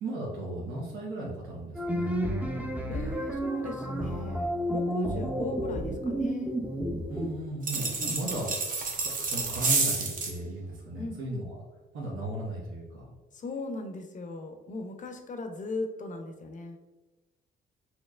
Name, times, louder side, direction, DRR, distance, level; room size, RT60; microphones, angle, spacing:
voice 1, 0.0-2.1 7.1-8.5 9.0-11.6 11.9-13.1, right 1 dB, 80° right, -4 dB, 0.8 m, -36 dB
sound 1, 1.7-7.4, equal, 10° right, 0.5 m, -31 dB
voice 2, 2.9-6.6 8.0-8.2 11.0-11.2 13.3-16.8, left 3 dB, 40° left, 6 dB, 0.6 m, -38 dB
sound 2, 7.6-10.4, right 4 dB, 45° right, 0.7 m, -29 dB
4.3 x 2.8 x 2.4 m, 1.1 s
cardioid pair, 90°, 20 cm